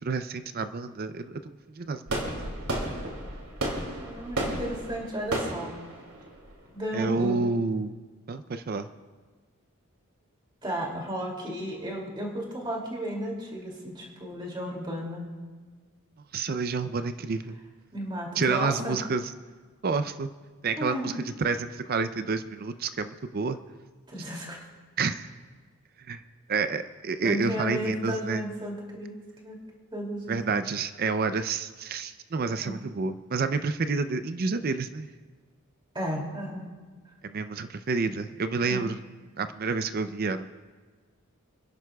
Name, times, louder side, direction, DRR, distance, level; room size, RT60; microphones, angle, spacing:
voice 1, 0.0-2.2 6.9-7.9 8.3-8.9 16.3-17.6 18.4-19.2 19.8-20.3 20.6-21.1 21.4-23.6 25.0-25.3 26.1-26.2 26.5-28.4 30.3-35.1 37.2-39.0 39.4-40.5, right 4 dB, 45° right, 10 dB, 0.4 m, -29 dB
sound 1, 2.1-7.0, right 1 dB, 80° right, 2.5 m, -33 dB
voice 2, 4.0-5.7 6.7-7.4 10.6-15.3 17.9-18.9 20.8-21.1 24.1-24.6 27.2-29.2 29.4-29.6 29.9-30.6 32.6-32.8 35.9-36.7 38.7-38.9, equal, 20° right, -1 dB, 2.5 m, -33 dB
29.5 x 11.0 x 2.3 m, 1.4 s
head